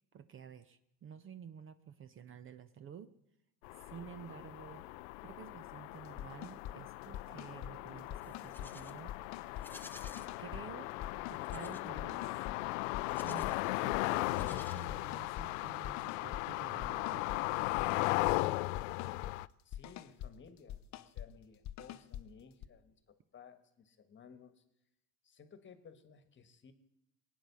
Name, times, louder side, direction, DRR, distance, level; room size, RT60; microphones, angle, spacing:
voice 1, 0.1-3.1 3.7-4.9 5.2-9.1 10.4-10.9 11.3-12.4 13.2-17.3, right 8 dB, 35° right, 13 dB, 0.7 m, -51 dB
sound 1, 3.6-19.5, left 20 dB, 85° left, 0.5 m, -37 dB
sound 2, 6.1-6.8 7.0-7.7 8.1-8.7 9.1-9.7 10.0-10.6 11.0-11.6 12.0-12.6 12.9-13.5 13.9-14.5 14.8-15.5 15.8-16.4 16.8-17.4 17.8-18.4 18.7-19.3 19.7-20.3 20.6-21.3 21.6-22.2 22.6-22.7, left 11 dB, 45° left, 0.8 m, -44 dB
Livestock farm animals working animals, 8.2-9.0 9.5-10.3 11.4-11.9 13.0-13.6 14.2-15.3, left 2 dB, 5° left, 0.8 m, -54 dB
voice 2, 19.6-24.6 25.2-26.7, left 6 dB, 30° left, 11 dB, 1.5 m, -57 dB
20.5 x 9.4 x 6.9 m, 0.82 s
supercardioid pair, 115°, 38 cm